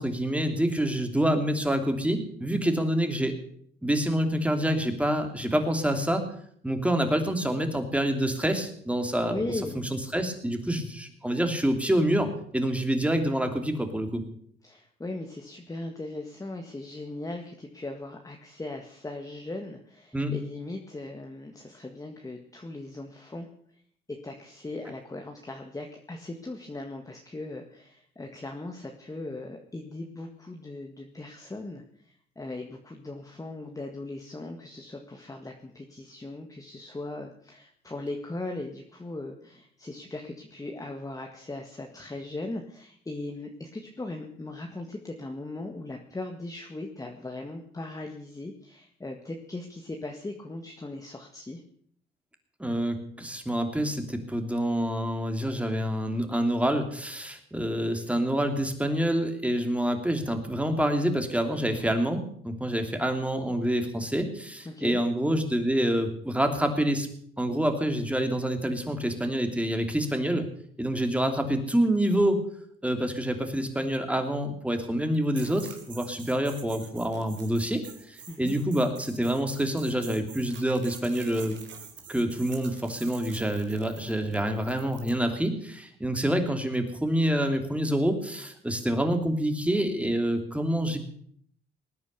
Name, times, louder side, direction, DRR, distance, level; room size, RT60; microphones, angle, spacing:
voice 1, 0.0-3.3 3.8-6.2 6.6-14.2 20.1-20.3 52.6-67.1 67.4-70.5 70.8-72.4 72.8-81.6 82.1-91.0, right 1 dB, 5° right, 6 dB, 2.9 m, -27 dB
voice 2, 9.3-9.8 14.6-23.5 24.1-51.6 64.7-65.0 78.3-78.6, left 2 dB, 15° left, 3 dB, 1.8 m, -38 dB
sound 1, 75.4-85.2, right 7 dB, 65° right, 3.3 m, -47 dB
19.5 x 9.7 x 6.9 m, 0.63 s
cardioid pair, 90°, 20 cm